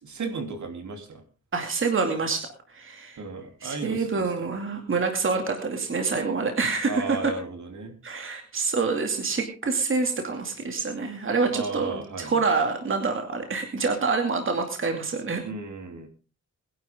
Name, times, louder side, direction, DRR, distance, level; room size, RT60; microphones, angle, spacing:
voice 1, 0.0-1.2 3.2-4.5 6.9-7.9 11.5-12.5 15.4-16.1, right 4 dB, 70° right, 5 dB, 3.2 m, -35 dB
voice 2, 1.5-3.2 3.6-7.3 8.0-15.4, right 4 dB, 40° right, 4 dB, 2.5 m, -27 dB
21.5 x 11.5 x 3.7 m, 0.33 s
wide cardioid pair, 180°, 31 cm